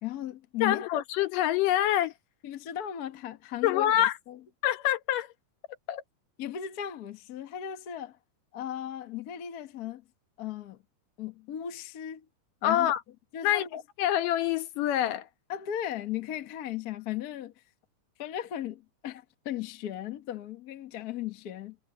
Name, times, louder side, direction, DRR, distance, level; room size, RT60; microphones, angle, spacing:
voice 1, 0.0-0.9 2.4-4.4 6.4-8.2 8.5-10.0 10.4-10.8 11.2-12.3 12.6-12.9 13.3-13.7 15.5-17.5 18.2-21.8, left 10 dB, 70° left, 0.9 m, -36 dB
voice 2, 0.6-2.1 3.6-4.1 4.6-5.3 5.9-6.0 12.6-13.0 13.4-15.3, left 12 dB, 85° left, 2.7 m, -26 dB
omnidirectional pair, 3.7 m